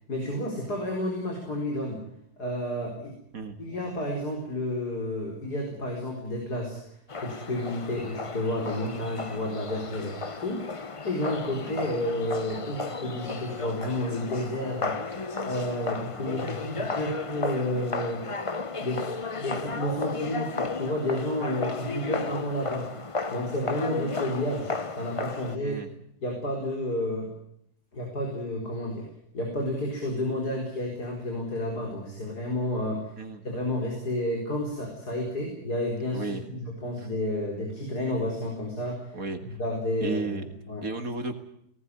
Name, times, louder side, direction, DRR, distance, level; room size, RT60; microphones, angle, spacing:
voice 1, 0.1-2.0 2.4-3.1 3.6-10.7 11.0-18.2 18.8-19.1 19.4-22.9 23.3-25.8 26.2-27.3 27.9-33.1 33.4-39.1 39.6-40.8, left 1 dB, 55° left, 0 dB, 5.0 m, -31 dB
sound 1, 7.1-25.6, left 4 dB, 40° left, 0.4 m, -34 dB
voice 2, 36.1-36.4 39.1-39.4 40.0-40.4 40.8-41.4, right 3 dB, 50° right, 6 dB, 2.3 m, -34 dB
19.0 x 19.0 x 9.8 m, 0.72 s
omnidirectional pair, 2.0 m